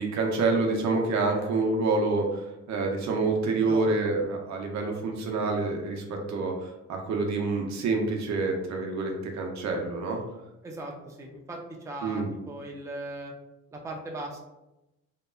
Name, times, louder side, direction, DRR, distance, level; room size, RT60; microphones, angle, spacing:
voice 1, 0.0-10.2 12.0-12.3, right 3 dB, 65° right, 2 dB, 0.6 m, -27 dB
voice 2, 3.6-4.1 10.6-13.3 13.7-14.4, right 1 dB, 10° right, 1 dB, 0.4 m, -39 dB
2.8 x 2.1 x 2.3 m, 0.94 s
cardioid pair, 90°, 30 cm